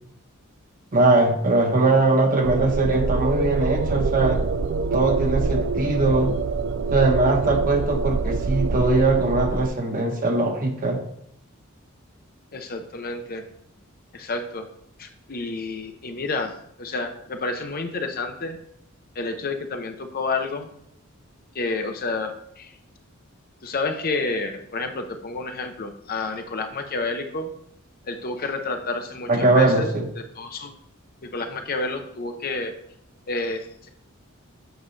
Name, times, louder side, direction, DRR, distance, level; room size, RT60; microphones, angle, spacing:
voice 1, 0.9-4.4 4.9-6.4 6.9-11.0 29.3-30.0, right 2 dB, 40° right, 2 dB, 1.1 m, -21 dB
sound 1, 2.4-9.7, right 4 dB, 55° right, 0.4 m, -25 dB
voice 2, 12.5-13.4 14.1-14.7 15.0-16.5 16.8-18.6 19.1-20.7 21.5-22.7 23.6-27.5 28.0-29.9 30.2-30.7 31.3-32.7 33.3-33.9, left 3 dB, 45° left, 5 dB, 0.7 m, -29 dB
8.1 x 5.4 x 3.2 m, 0.72 s
head